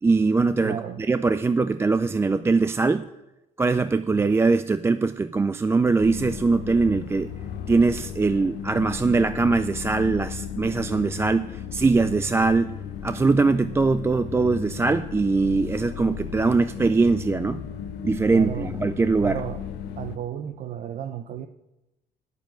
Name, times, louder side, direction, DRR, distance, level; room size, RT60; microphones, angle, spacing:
voice 1, 0.0-0.8 1.1-3.1 3.6-7.3 7.7-17.6 18.0-19.4, right 4 dB, 15° right, 12 dB, 0.3 m, -22 dB
voice 2, 0.6-1.0 4.1-4.3 18.3-18.7 19.2-19.6 20.0-21.5, right 10 dB, 50° right, 9 dB, 0.6 m, -33 dB
sound 1, 6.0-20.2, left 8 dB, 80° left, 1.0 m, -35 dB
9.4 x 6.9 x 8.9 m, 0.95 s
cardioid pair, 110°, 17 cm